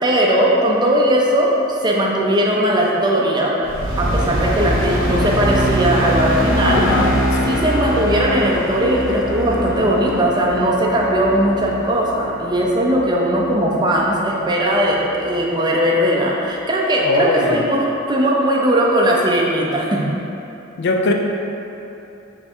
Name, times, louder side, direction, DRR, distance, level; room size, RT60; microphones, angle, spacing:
voice 1, 0.0-3.6 4.0-6.9 7.5-20.1, equal, 20° right, -2 dB, 0.5 m, -18 dB
sound 1, 3.6-14.1, equal, 75° right, 0.8 m, -23 dB
voice 2, 6.6-7.6 17.0-17.6 20.8-21.1, left 2 dB, 60° left, 2 dB, 0.4 m, -20 dB
3.5 x 3.3 x 4.2 m, 2.9 s
head